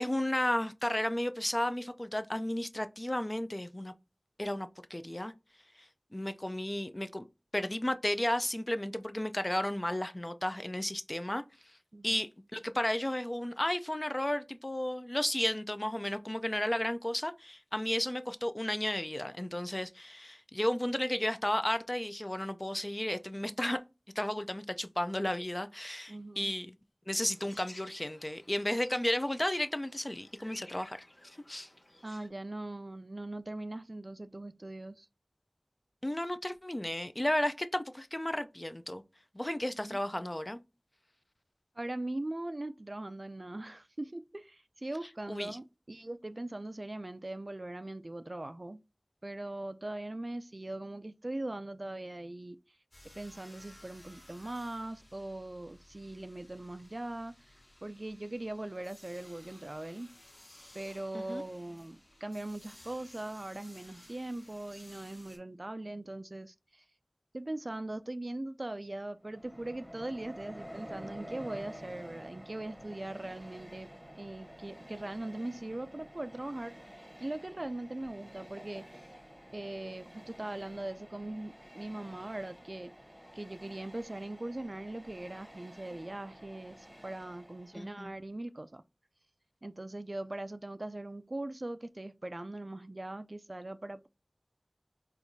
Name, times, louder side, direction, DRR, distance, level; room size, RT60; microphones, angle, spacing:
voice 1, 0.0-3.9 4.4-5.3 5.8-7.3 7.5-11.4 12.0-23.8 24.2-26.8 27.1-31.0 31.2-31.7 36.0-39.0 39.3-40.6 45.3-45.6 61.1-61.4 87.7-88.1, left 1 dB, 35° left, 0.4 m, -33 dB
voice 2, 26.1-26.5 32.0-35.1 39.8-40.0 41.8-48.8 49.2-52.6 53.1-57.5 57.8-60.1 60.7-66.8 67.3-73.9 74.2-76.8 77.2-78.9 79.5-82.9 83.3-88.8 89.6-94.1, right 1 dB, 55° right, 0.3 m, -40 dB
sound 1, 27.2-32.3, left 1 dB, 85° left, 1.3 m, -55 dB
sound 2, 52.9-65.4, left 1 dB, 60° left, 1.6 m, -57 dB
Train, 69.2-88.1, equal, 5° right, 1.0 m, -50 dB
4.4 x 2.4 x 2.6 m
wide cardioid pair, 40°, 0 cm